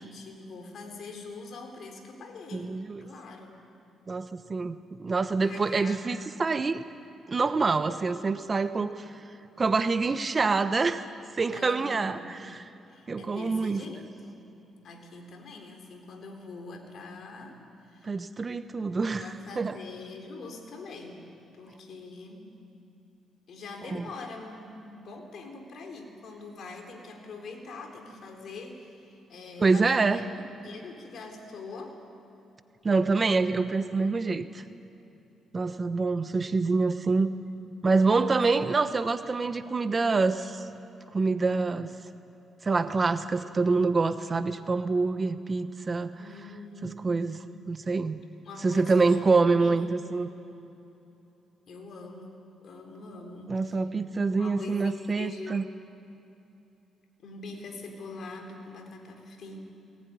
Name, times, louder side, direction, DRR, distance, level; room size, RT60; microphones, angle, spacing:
voice 1, 0.0-3.6 5.4-6.0 11.5-12.5 12.9-14.5 14.8-17.6 17.9-18.3 19.2-21.3 21.5-22.5 23.5-30.2 30.6-32.0 38.0-38.5 46.2-47.4 48.4-49.8 51.7-53.8 54.4-55.7 57.2-59.6, left 3 dB, 60° left, 3 dB, 3.9 m, -43 dB
voice 2, 2.5-3.0 4.1-6.8 7.3-9.1 9.6-11.1 11.4-12.6 13.1-13.8 18.0-19.8 23.9-24.1 29.6-30.2 32.8-34.6 35.5-37.3 37.8-40.7 41.1-41.9 42.6-46.1 46.8-47.4 47.7-48.2 48.6-50.3 53.5-55.6, right 4 dB, 30° right, 11 dB, 1.0 m, -26 dB
20.5 x 18.5 x 9.6 m, 3.0 s
cardioid pair, 90°, 0 cm